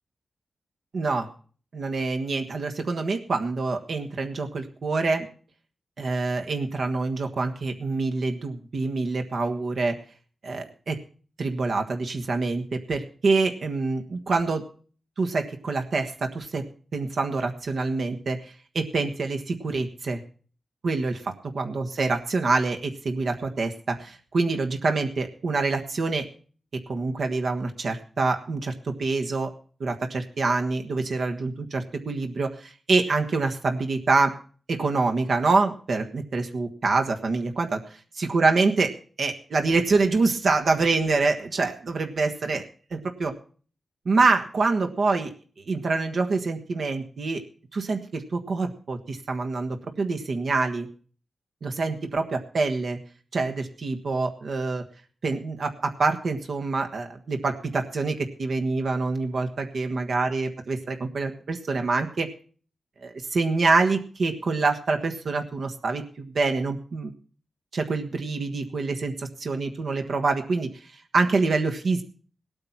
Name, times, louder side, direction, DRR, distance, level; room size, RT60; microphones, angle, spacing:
voice 1, 0.9-1.3 1.7-5.3 6.0-10.0 10.4-11.0 11.4-14.6 15.2-16.6 16.9-20.2 20.8-26.2 26.9-29.5 29.8-34.3 34.7-37.8 38.2-38.9 39.2-42.6 42.9-43.3 44.0-45.3 45.7-47.4 47.7-50.9 51.6-53.0 53.3-54.8 55.2-62.3 63.0-67.1 67.7-70.7 71.1-72.0, right 3 dB, 70° right, 4 dB, 1.5 m, -26 dB
17.5 x 8.8 x 5.8 m, 0.42 s
cardioid pair, 70°, 0 cm